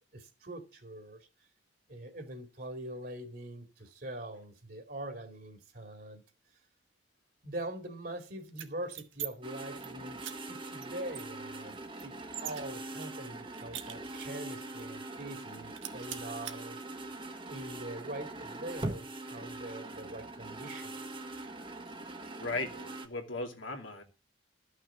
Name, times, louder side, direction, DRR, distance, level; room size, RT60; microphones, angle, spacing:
voice 1, 0.1-1.3 1.9-6.2 7.4-12.1 12.4-16.8 17.5-21.0, right 1 dB, 50° right, 2.3 m, -43 dB
sound 1, 8.5-9.3 9.6-9.9 10.2-10.3 10.8-10.9 11.1-12.6 13.0-14.4 14.8-14.9 15.2-15.5 15.8-16.6, right 11 dB, 90° right, 1.5 m, -42 dB
sound 2, 9.4-23.1, right 2 dB, 25° right, 1.2 m, -42 dB
voice 2, 22.4-24.0, left 2 dB, 85° left, 2.5 m, -37 dB
13.5 x 6.4 x 7.0 m
head